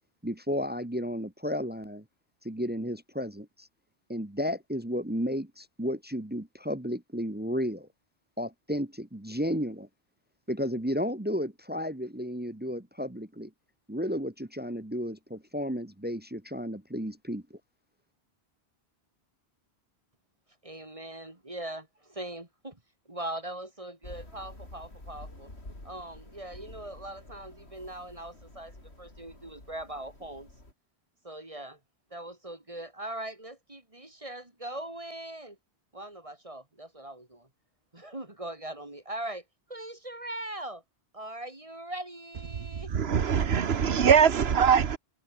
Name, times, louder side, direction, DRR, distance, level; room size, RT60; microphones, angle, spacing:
voice 1, 0.2-2.0 2.4-3.7 4.1-7.9 8.4-9.9 10.5-13.5 13.9-17.4, equal, 10° right, 0.9 m, -33 dB
voice 2, 20.6-22.8 23.1-25.5 25.8-30.5 31.2-31.8 32.1-35.6 35.9-37.5 37.9-39.4 39.7-40.8 41.1-42.9, right 1 dB, 30° right, 2.8 m, -40 dB
sound 1, 24.0-30.7, left 2 dB, 85° left, 6.1 m, -49 dB
voice 3, 42.5-45.0, right 7 dB, 70° right, 1.3 m, -23 dB
omnidirectional pair, 1.1 m